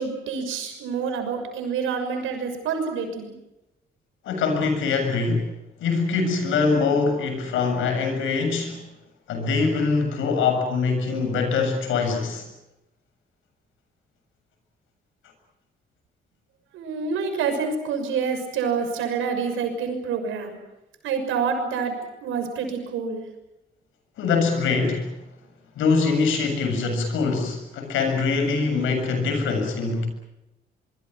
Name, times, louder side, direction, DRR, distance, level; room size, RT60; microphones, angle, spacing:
voice 1, 0.0-3.3 16.7-20.6 21.0-21.9 22.2-23.2, right 5 dB, 90° right, 6 dB, 6.4 m, -27 dB
voice 2, 4.2-5.5 5.8-8.8 9.3-12.5 24.2-25.2 25.8-30.1, left 4 dB, 85° left, 5 dB, 7.4 m, -23 dB
24.5 x 24.0 x 7.8 m, 0.93 s
cardioid pair, 90°, 20 cm